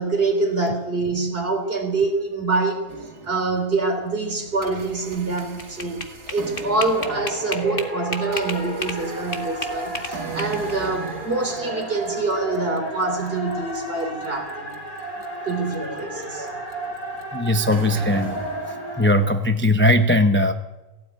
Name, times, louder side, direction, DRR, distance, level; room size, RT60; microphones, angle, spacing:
voice 1, 0.0-2.9 3.2-6.0 6.3-14.7 15.5-16.6, right 3 dB, 35° right, 3 dB, 3.9 m, -25 dB
sound 1, 2.9-3.8 4.3-19.3, right 5 dB, 85° right, 2.6 m, -40 dB
sound 2, 3.9-6.1 6.4-6.6 6.8-19.2, right 1 dB, 70° left, 5.4 m, -33 dB
sound 3, 5.1-9.0 9.3-10.9, left 3 dB, 35° left, 1.9 m, -32 dB
voice 2, 17.3-18.4 19.0-20.5, left 1 dB, 10° left, 6 dB, 0.6 m, -19 dB
17.5 x 16.5 x 9.4 m, 1.1 s
omnidirectional pair, 1.6 m